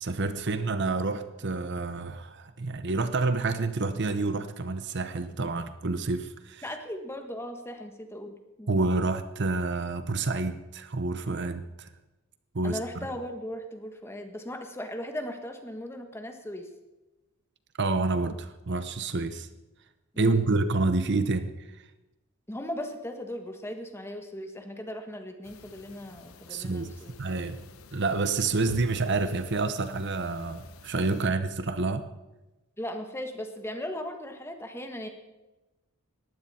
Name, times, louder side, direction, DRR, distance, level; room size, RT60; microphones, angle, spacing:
voice 1, 0.0-6.6 8.7-11.9 12.5-12.8 17.8-19.5 20.2-21.5 26.5-26.9 27.2-27.6 27.9-32.0, right 3 dB, 50° right, 11 dB, 0.9 m, -28 dB
voice 2, 6.6-8.8 12.6-16.7 20.1-20.5 22.5-27.1 32.8-35.1, left 1 dB, 10° left, 5 dB, 1.5 m, -38 dB
sound 1, 25.4-31.3, left 3 dB, 70° left, 1.0 m, -47 dB
20.0 x 15.0 x 4.3 m, 1.1 s
head